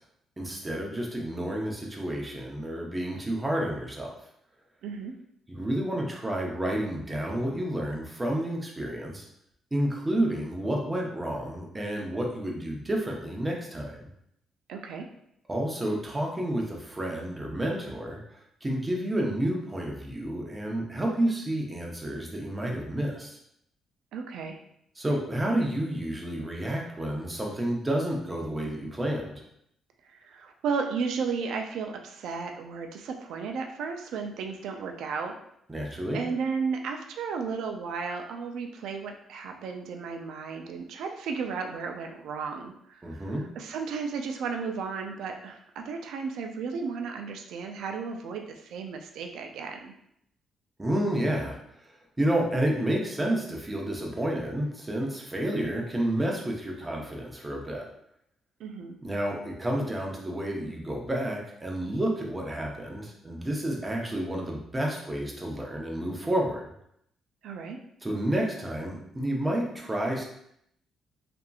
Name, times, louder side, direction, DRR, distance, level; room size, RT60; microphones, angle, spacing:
voice 1, 0.4-4.1 5.5-9.3 9.7-14.1 15.5-18.2 18.6-23.4 25.0-29.3 35.7-36.2 43.0-43.4 50.8-51.9 52.2-57.9 59.0-66.6 68.0-70.2, right 1 dB, 20° right, -1 dB, 0.6 m, -30 dB
voice 2, 4.8-5.1 14.7-15.0 24.1-24.6 30.2-35.3 36.1-43.2 43.6-49.9 58.6-59.0 67.4-67.8, right 5 dB, 80° right, 4 dB, 0.3 m, -34 dB
2.8 x 2.5 x 2.3 m, 0.74 s
cardioid pair, 90°, 0 cm